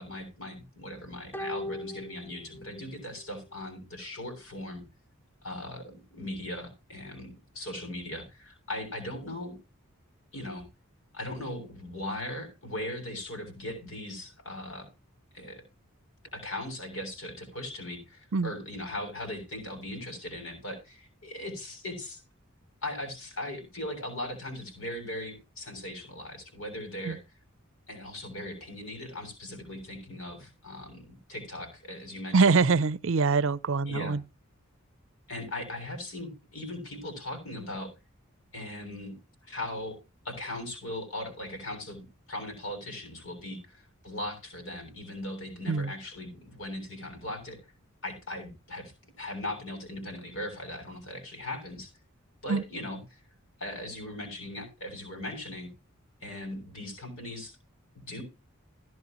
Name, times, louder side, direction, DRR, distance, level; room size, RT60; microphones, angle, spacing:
voice 1, 0.0-4.8 5.4-9.6 10.3-10.7 11.1-14.9 15.3-15.6 16.3-22.2 22.8-27.2 27.9-32.5 33.9-34.2 35.3-37.9 38.5-39.2 39.5-40.0 40.2-47.6 48.0-51.9 52.4-53.2 53.6-55.7 56.2-57.5 57.9-58.2, left 1 dB, 65° left, 7.3 m, -39 dB
sound 1, 1.3-3.0 3.3-3.4, left 1 dB, 10° left, 0.6 m, -39 dB
voice 2, 32.3-34.2 45.7-45.9 52.5-52.6, right 4 dB, 65° right, 0.6 m, -24 dB
15.5 x 11.0 x 3.0 m
head